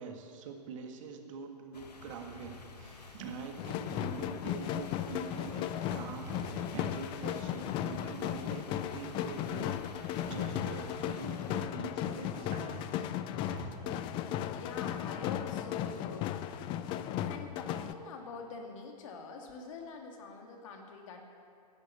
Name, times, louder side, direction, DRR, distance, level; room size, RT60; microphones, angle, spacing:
voice 1, 0.0-6.3 6.7-13.1 13.4-13.8, right 5 dB, 50° right, 4 dB, 1.7 m, -45 dB
sound 1, 1.7-11.7, left 4 dB, 75° left, 1.5 m, -51 dB
sound 2, 3.6-17.9, left 11 dB, 25° left, 0.4 m, -36 dB
sound 3, 6.2-6.7 10.3-10.8 12.3-13.0 13.5-14.0, right 1 dB, 20° right, 2.7 m, -44 dB
voice 2, 14.5-16.4 17.2-21.4, left 4 dB, 50° left, 2 dB, 2.2 m, -45 dB
11.5 x 10.0 x 8.2 m, 2.3 s
figure-of-eight pair, 110°, 21 cm